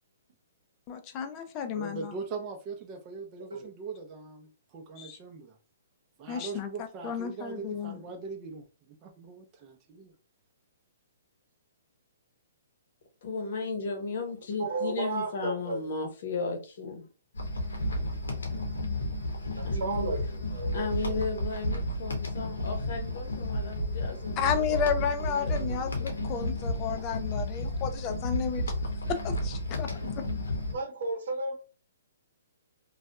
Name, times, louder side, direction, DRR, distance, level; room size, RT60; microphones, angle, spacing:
voice 1, 0.9-2.1 5.0-5.2 6.3-6.7 7.0-8.0 24.4-28.6 29.1-30.2, left 7 dB, 30° left, 0.4 m, -32 dB
voice 2, 1.7-5.6 6.2-8.7 9.0-10.1, right 4 dB, 30° right, 0.6 m, -41 dB
voice 3, 13.2-17.1 19.6-20.2 20.7-26.3, left 4 dB, 60° left, 0.8 m, -35 dB
voice 4, 14.6-15.8 19.6-21.4 30.7-31.5, right 3 dB, 65° right, 0.9 m, -34 dB
sound 1, 17.3-30.7, left 1 dB, 85° left, 0.8 m, -32 dB
2.7 x 2.3 x 2.2 m
hypercardioid pair, 140°, 0 cm